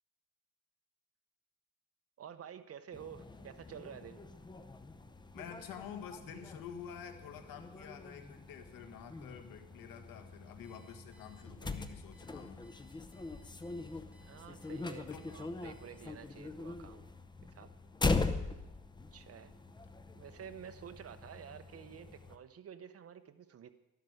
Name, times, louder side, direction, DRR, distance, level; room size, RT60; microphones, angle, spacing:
voice 1, 2.2-4.2 14.2-17.1 17.5-17.7 19.1-19.5 20.1-23.7, right 8 dB, 45° right, 10 dB, 0.9 m, -50 dB
sound 1, 2.9-22.4, left 3 dB, 15° left, 0.6 m, -41 dB
voice 2, 5.3-12.7 15.1-15.2, left 8 dB, 85° left, 7 dB, 1.6 m, -48 dB
Alarm, 10.6-16.3, equal, 5° right, 2.1 m, -67 dB
12.0 x 11.5 x 6.4 m, 0.98 s
cardioid pair, 135°, 34 cm